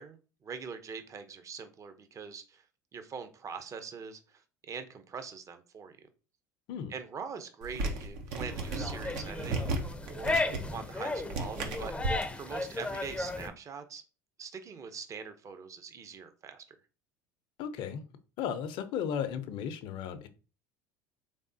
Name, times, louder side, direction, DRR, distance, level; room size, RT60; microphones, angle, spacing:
voice 1, 0.0-2.6 2.9-4.2 4.7-6.0 6.9-9.7 10.1-10.4 10.7-14.0 14.4-16.6, right 6 dB, 35° right, 0.7 m, -43 dB
sound 1, 7.6-12.3, right 2 dB, 70° right, 0.7 m, -35 dB
sound 2, 8.5-13.5, left 2 dB, 10° left, 0.5 m, -35 dB
voice 2, 17.6-18.0 18.4-20.3, left 8 dB, 60° left, 0.6 m, -35 dB
3.5 x 3.4 x 2.7 m
hypercardioid pair, 80°, 9 cm